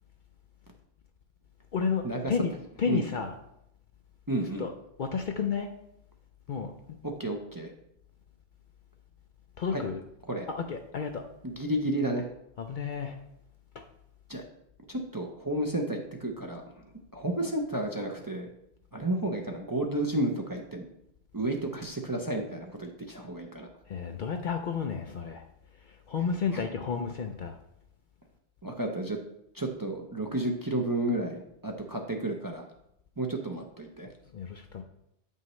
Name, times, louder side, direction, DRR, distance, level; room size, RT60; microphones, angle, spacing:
voice 1, 1.7-2.5 2.8-3.3 4.6-4.7 5.0-5.7 6.5-6.7 9.6-10.0 10.5-11.2 12.6-13.1 23.9-25.4 26.1-27.5 34.3-34.8, left 6 dB, 55° left, 5 dB, 0.6 m, -31 dB
voice 2, 4.3-4.7 7.0-7.7 9.7-9.8 10.3-10.5 11.4-12.3 14.3-14.4 14.9-16.8 17.1-18.5 18.9-20.8 21.3-23.7 26.5-26.7 28.6-29.2 29.5-32.6 33.2-34.1, right 1 dB, 25° right, 2 dB, 0.6 m, -32 dB
8.5 x 5.5 x 3.1 m, 0.79 s
omnidirectional pair, 1.1 m